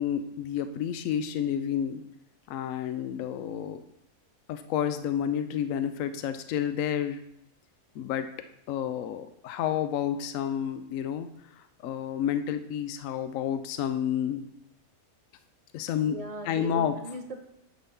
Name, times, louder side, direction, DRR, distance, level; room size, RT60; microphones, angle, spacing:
voice 1, 0.0-2.0 2.5-3.8 4.5-7.2 7.9-8.3 8.7-11.3 11.8-14.4 15.7-16.2 16.5-16.9, left 9 dB, 70° left, 10 dB, 0.9 m, -30 dB
voice 2, 16.0-17.5, right 1 dB, 35° right, 5 dB, 0.6 m, -39 dB
10.0 x 3.6 x 5.6 m, 0.79 s
omnidirectional pair, 1.6 m